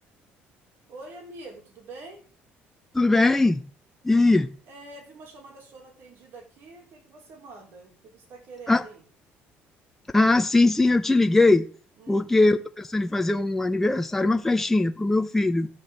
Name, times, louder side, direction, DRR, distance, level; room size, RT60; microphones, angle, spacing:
voice 1, 0.9-2.2 4.7-9.0 12.0-12.3, right 2 dB, 60° right, 4.8 m, -45 dB
voice 2, 2.9-3.6 4.0-4.5 8.7-8.8 10.1-11.7 12.1-15.7, left 2 dB, 5° left, 0.7 m, -21 dB
13.5 x 7.5 x 6.7 m
cardioid pair, 140°, 4 cm